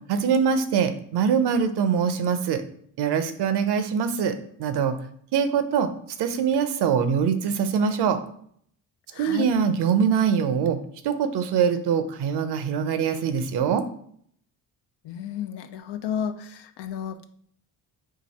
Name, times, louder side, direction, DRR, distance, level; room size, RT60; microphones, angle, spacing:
voice 1, 0.1-2.6 3.0-5.0 5.3-5.9 6.2-8.2 9.1-10.8 11.0-13.8, right 7 dB, 70° right, 10 dB, 0.6 m, -23 dB
voice 2, 9.1-9.5 15.0-17.2, left 8 dB, 75° left, 9 dB, 0.6 m, -32 dB
4.7 x 2.5 x 4.1 m, 0.63 s
cardioid pair, 85°, 42 cm